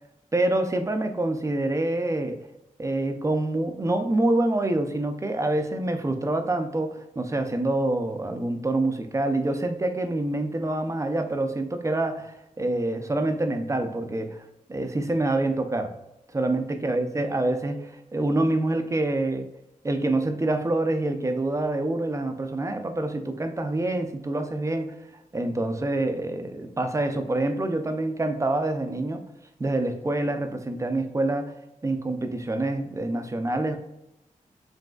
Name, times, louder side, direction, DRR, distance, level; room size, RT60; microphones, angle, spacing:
voice 1, 0.3-2.4 2.8-14.4 14.7-15.9 16.3-19.5 19.8-25.0 25.3-29.2 29.6-31.6 31.8-33.8, right 2 dB, 20° right, 7 dB, 0.4 m, -26 dB
5.0 x 3.2 x 2.3 m, 0.89 s
wide cardioid pair, 80°, 14 cm